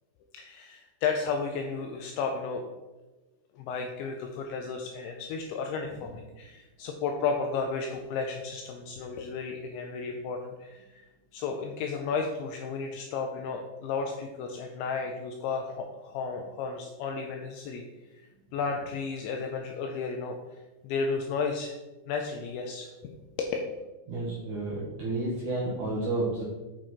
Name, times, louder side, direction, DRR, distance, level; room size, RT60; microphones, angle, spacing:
voice 1, 0.3-2.7 3.6-11.1 11.3-17.8 18.1-18.3 18.5-21.7 22.1-23.6, left 5 dB, 80° left, 3 dB, 2.7 m, -33 dB
voice 2, 24.1-26.4, right 2 dB, 80° right, -5 dB, 1.7 m, -31 dB
9.0 x 5.8 x 4.5 m, 1.1 s
omnidirectional pair, 5.8 m